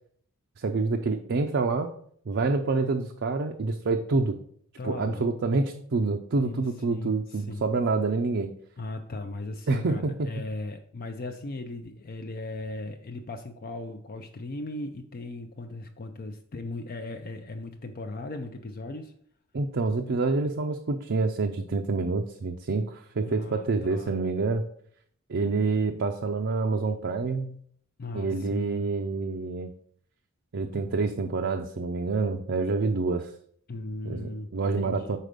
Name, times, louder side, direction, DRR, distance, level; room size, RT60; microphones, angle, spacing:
voice 1, 0.6-1.9 2.3-4.4 4.8-8.5 9.7-10.3 19.5-24.6 25.3-27.6 28.1-29.7 30.5-33.3 34.1-35.2, right 3 dB, 55° right, 4 dB, 0.5 m, -27 dB
voice 2, 4.8-5.6 6.4-7.6 8.8-19.1 23.3-24.1 28.0-28.9 30.7-30.9 33.7-35.2, left 2 dB, 40° left, 5 dB, 0.5 m, -38 dB
6.4 x 4.2 x 5.1 m, 0.62 s
head